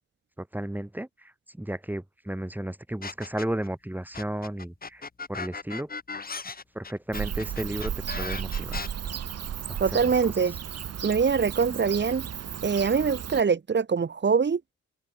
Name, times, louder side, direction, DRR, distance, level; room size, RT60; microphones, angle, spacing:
voice 1, 0.4-1.1 1.6-5.0 5.3-5.9 6.8-8.9 9.7-9.8 10.2-10.3, right 1 dB, 5° right, 7.0 m, -33 dB
sound 1, 3.0-3.7 4.1-8.9, left 4 dB, 30° left, 6.6 m, -37 dB
Bird / Cricket, 7.1-13.4, right 9 dB, 55° right, 3.4 m, -34 dB
voice 2, 9.8-10.5 11.0-12.3 12.6-14.6, right 5 dB, 35° right, 3.5 m, -23 dB
open air
cardioid pair, 90°, 30 cm